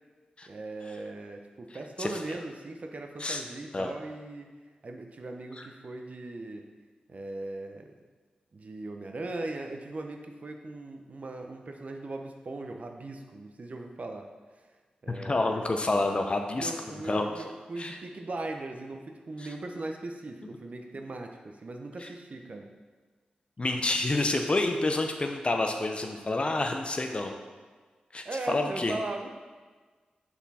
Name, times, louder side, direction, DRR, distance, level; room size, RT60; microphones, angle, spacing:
voice 1, 0.5-4.5 4.8-6.7 7.1-7.9 8.5-14.3 15.0-15.5 16.5-22.8 28.2-29.3, right 2 dB, 55° right, 4 dB, 0.7 m, -39 dB
voice 2, 15.1-16.7 17.1-17.4 17.8-18.0 22.0-22.1 23.6-27.4 28.1-29.0, left 2 dB, 40° left, 4 dB, 0.6 m, -28 dB
5.8 x 4.2 x 4.2 m, 1.4 s
cardioid pair, 55°, 3 cm